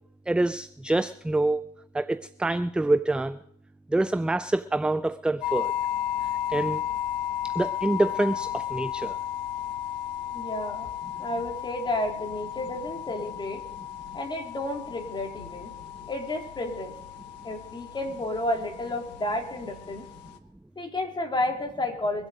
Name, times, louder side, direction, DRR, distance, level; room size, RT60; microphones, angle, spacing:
voice 1, 0.3-1.7 1.9-3.4 3.9-5.7 6.5-6.8 7.4-9.2, right 2 dB, 5° right, 0.5 m, -26 dB
sound 1, 5.4-20.4, left 11 dB, 85° left, 1.2 m, -34 dB
voice 2, 10.3-10.9 11.2-13.6 14.1-15.7 16.1-16.9 17.4-20.1 20.8-22.3, left 1 dB, 20° left, 3.8 m, -31 dB
23.5 x 8.1 x 5.1 m
supercardioid pair, 85°, 21 cm